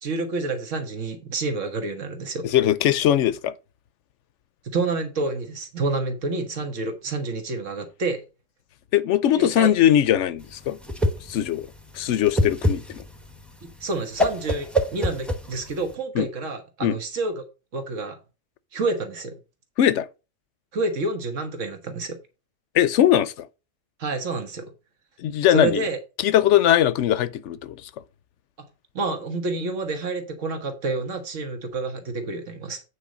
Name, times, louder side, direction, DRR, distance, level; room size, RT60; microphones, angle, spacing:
voice 1, 0.0-2.4 4.6-8.2 9.4-9.7 13.8-17.4 17.7-18.2 18.7-19.4 20.7-22.2 24.0-24.6 25.5-26.0 28.9-32.8, right 3 dB, 85° right, 1.7 m, -28 dB
voice 2, 2.5-3.5 8.9-10.8 11.3-11.7 11.9-13.0 16.2-16.3 16.8-17.0 19.8-20.1 22.7-23.5 25.2-25.8 26.2-27.8, left 11 dB, 75° left, 0.9 m, -20 dB
Whoosh swoosh swish, 10.4-15.9, left 1 dB, ahead, 0.9 m, -26 dB
8.7 x 4.7 x 5.0 m
omnidirectional pair, 1.3 m